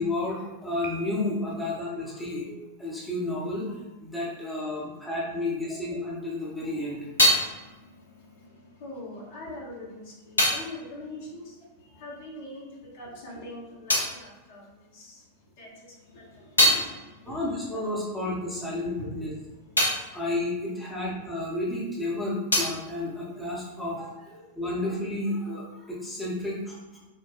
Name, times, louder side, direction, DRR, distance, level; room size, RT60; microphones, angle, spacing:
voice 1, 0.0-7.1 17.2-19.3 20.1-26.8, left 2 dB, 5° left, -6 dB, 0.9 m, -31 dB
Piano, 0.8-1.8, right 5 dB, 40° right, 0.4 m, -44 dB
sound 1, 6.4-12.4 12.6-15.3 15.7-21.8 22.0-24.1, left 1 dB, 75° left, 0.5 m, -30 dB
voice 2, 8.8-15.2 15.6-16.9 17.2-17.6 19.0-19.1, left 1 dB, 55° left, -4 dB, 1.0 m, -43 dB
4.5 x 2.1 x 2.4 m, 1.1 s
figure-of-eight pair, 90°, 0 cm